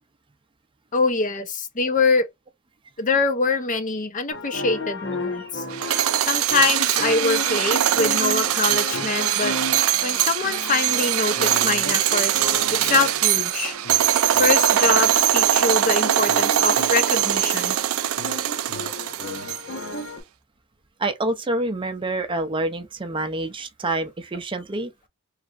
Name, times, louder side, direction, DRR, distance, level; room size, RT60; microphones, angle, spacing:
voice 1, 0.9-2.3 3.0-5.6 6.3-9.5 10.0-12.3 12.7-13.7 14.4-17.8, left 3 dB, 40° left, 0.6 m, -24 dB
sound 1, 4.3-20.2, left 2 dB, 60° left, 1.1 m, -34 dB
sound 2, 5.7-19.8, right 12 dB, 80° right, 0.4 m, -22 dB
voice 2, 21.0-24.9, right 2 dB, 25° right, 0.5 m, -27 dB
3.2 x 2.8 x 2.5 m
head